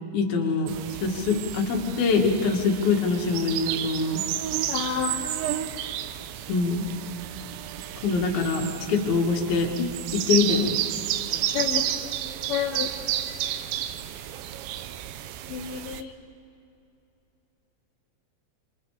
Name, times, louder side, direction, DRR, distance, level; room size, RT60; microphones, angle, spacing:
voice 1, 0.1-4.2 6.5-6.9 8.0-9.7 10.1-10.8, left 4 dB, 60° left, 1 dB, 3.8 m, -24 dB
sound 1, 0.7-16.0, right 12 dB, 85° right, 3.1 m, -31 dB
voice 2, 4.7-5.3 9.8-9.9 11.5-11.8 12.5-12.9 15.5-16.1, left 8 dB, 80° left, 2 dB, 3.2 m, -29 dB
28.0 x 27.0 x 5.0 m, 2.8 s
omnidirectional pair, 5.1 m